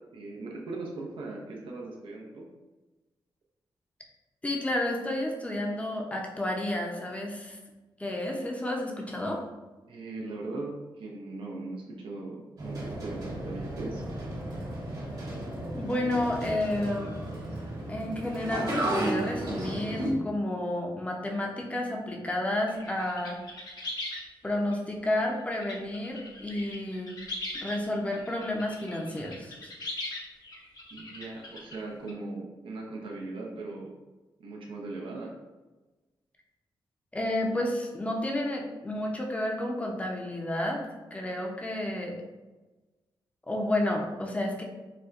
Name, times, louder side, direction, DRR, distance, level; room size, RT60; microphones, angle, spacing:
voice 1, 0.1-2.5 9.9-14.1 30.9-33.9 34.4-35.3, right 2 dB, 80° right, -2 dB, 0.6 m, -39 dB
voice 2, 4.4-7.6 8.0-9.4 15.7-17.1 17.9-23.4 24.4-27.2 27.6-29.6 37.1-40.8 41.1-42.1 43.5-44.6, left 1 dB, 15° left, 0 dB, 0.6 m, -31 dB
sound 1, 12.6-20.1, right 1 dB, 50° right, 1.1 m, -34 dB
sound 2, 22.7-24.2 24.7-24.8 25.4-27.8 28.1-32.1, left 2 dB, 50° left, 0.8 m, -40 dB
4.2 x 2.2 x 2.4 m, 1.2 s
cardioid pair, 65°, 9 cm